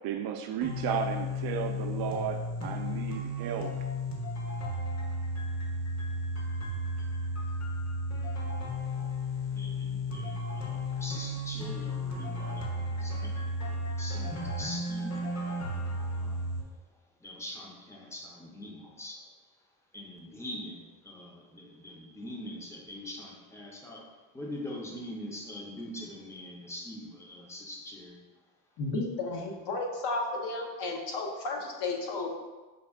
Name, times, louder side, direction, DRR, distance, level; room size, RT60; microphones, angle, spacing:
voice 1, 0.0-3.7, right 8 dB, 55° right, 5 dB, 0.5 m, -34 dB
sound 1, 0.6-16.6, left 1 dB, 35° left, 0.9 m, -34 dB
voice 2, 9.5-12.7 13.0-13.3 13.6-15.4 16.1-16.6 17.2-19.2 19.9-28.2, left 1 dB, 5° left, -1 dB, 0.6 m, -43 dB
voice 3, 28.8-32.3, left 3 dB, 60° left, 1 dB, 0.9 m, -33 dB
5.3 x 2.3 x 3.5 m, 1.2 s
cardioid pair, 110°, 46 cm